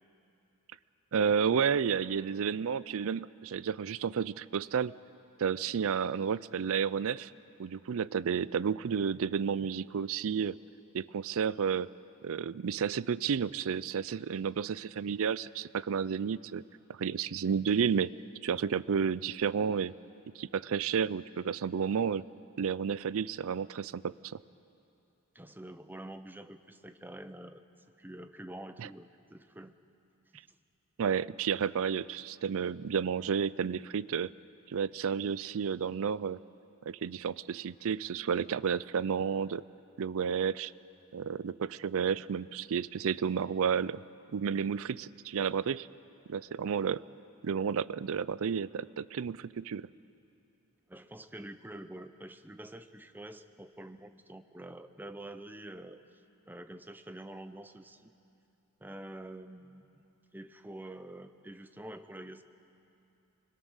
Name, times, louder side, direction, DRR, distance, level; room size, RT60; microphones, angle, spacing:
voice 1, 1.1-4.9 5.4-7.3 7.6-10.6 10.9-11.9 12.2-16.6 17.0-18.1 18.4-19.9 20.4-22.2 22.6-24.4 28.8-28.9 31.0-34.3 34.7-36.4 36.9-39.6 40.0-40.7 41.1-44.0 44.3-45.9 46.3-47.0 47.4-49.9, right 7 dB, 65° right, 19 dB, 0.4 m, -31 dB
voice 2, 25.3-27.6 28.0-29.7 50.9-56.0 56.4-58.1 58.8-60.0 60.3-62.4, right 1 dB, 10° right, 10 dB, 0.7 m, -47 dB
25.0 x 21.5 x 6.5 m, 2.8 s
head